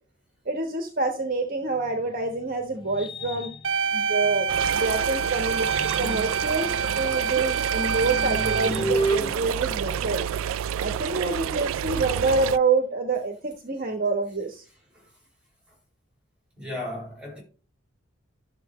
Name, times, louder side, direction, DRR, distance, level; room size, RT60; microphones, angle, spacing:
voice 1, 0.4-3.5 3.9-4.5 4.7-5.7 6.0-10.2 10.8-14.6, right 3 dB, 45° right, 1.2 m, -27 dB
sound 1, 1.8-4.9 5.4-10.6, right 2 dB, 25° left, 0.4 m, -33 dB
sound 2, 3.6-8.7, right 6 dB, 70° right, 0.7 m, -27 dB
sound 3, 4.5-12.6, right 9 dB, 85° right, 0.3 m, -29 dB
voice 2, 14.6-15.1 16.6-17.4, left 1 dB, 5° right, 6.1 m, -36 dB
12.5 x 6.9 x 3.1 m
head